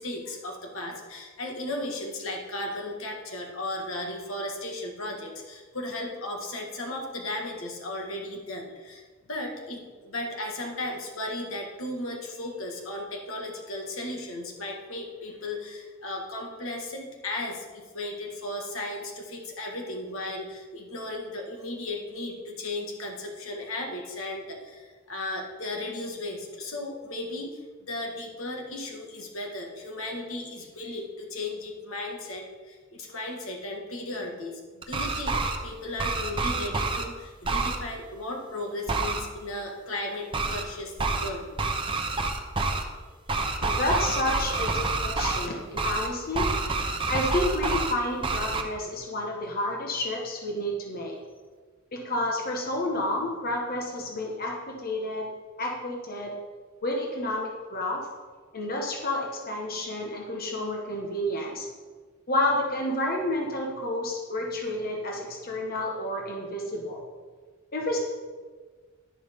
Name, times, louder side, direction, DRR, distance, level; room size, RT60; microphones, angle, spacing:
voice 1, 0.0-9.0 9.3-41.4, left 1 dB, 80° left, 1 dB, 1.8 m, -35 dB
sound 1, 34.8-35.6 36.0-37.0 37.4-37.8 38.9-39.2 40.3-40.6 41.0-41.3 41.6-42.8 43.3-45.5 45.8-46.1 46.3-47.9 48.2-48.6, right 3 dB, 25° right, 0.9 m, -28 dB
voice 2, 43.6-46.5 47.1-51.2 51.9-55.3 55.6-56.3 56.8-58.0 58.5-61.7 62.3-67.0 67.7-68.0, left 1 dB, 45° left, 0 dB, 1.4 m, -30 dB
11.0 x 10.5 x 3.7 m, 1.5 s
head